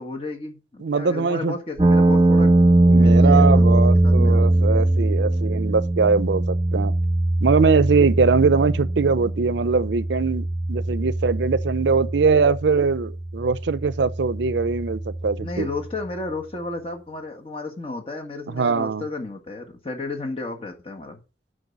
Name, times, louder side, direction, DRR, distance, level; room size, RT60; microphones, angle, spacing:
voice 1, 0.0-2.5 3.0-4.5 15.4-21.2, left 2 dB, 30° left, 1.6 m, -33 dB
voice 2, 0.8-1.6 2.9-6.9 7.4-15.7 18.5-19.0, right 4 dB, 80° right, 0.5 m, -21 dB
sound 1, 1.8-15.8, right 1 dB, 25° right, 1.1 m, -20 dB
7.9 x 5.3 x 5.3 m
head